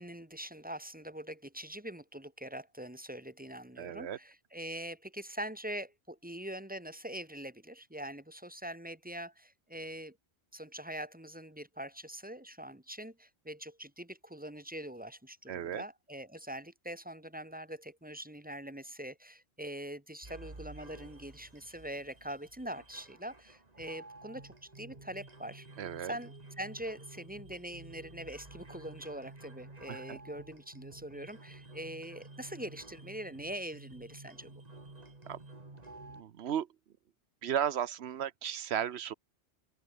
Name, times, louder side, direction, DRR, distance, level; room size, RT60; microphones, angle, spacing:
voice 1, 0.0-10.2 10.5-25.7 26.0-34.6, right 1 dB, 10° right, 1.6 m, -43 dB
voice 2, 3.8-4.2 15.5-15.8 25.8-26.1 29.9-30.2 35.3-35.4 36.1-36.7 37.4-39.1, right 9 dB, 80° right, 1.1 m, -35 dB
sound 1, 20.2-36.2, right 2 dB, 40° right, 2.5 m, -52 dB
open air
omnidirectional pair, 1.1 m